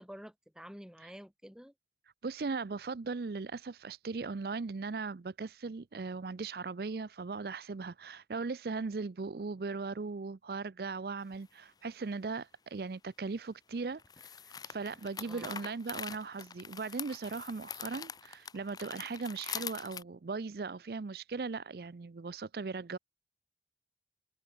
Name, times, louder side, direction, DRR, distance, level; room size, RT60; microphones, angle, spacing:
voice 1, 0.0-1.7 15.2-15.6, equal, 5° right, 1.1 m, -49 dB
voice 2, 2.2-23.0, right 4 dB, 55° right, 0.5 m, -38 dB
sound 1, 11.3-11.4 14.0-20.0, left 7 dB, 20° left, 0.5 m, -44 dB
head